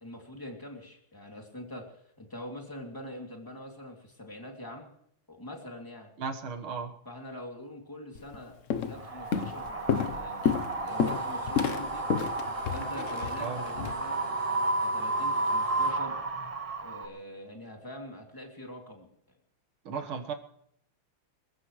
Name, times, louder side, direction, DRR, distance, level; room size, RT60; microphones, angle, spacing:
voice 1, 0.0-4.9 5.3-6.1 7.1-12.1 12.7-14.2 14.8-16.2 16.8-19.1, left 1 dB, 10° left, 1 dB, 2.5 m, -44 dB
voice 2, 6.2-6.9 13.4-13.7 19.9-20.3, right 5 dB, 85° right, 6 dB, 2.3 m, -35 dB
Walk footsteps, 8.2-8.4 8.7-9.0 9.3-13.9, left 7 dB, 55° left, 0.9 m, -30 dB
Wind, 8.9-17.0, right 2 dB, 45° right, 0.4 m, -32 dB
sound 1, 10.9-15.9, right 1 dB, 30° left, 8.1 m, -48 dB
26.5 x 14.5 x 3.2 m, 0.71 s
omnidirectional pair, 2.2 m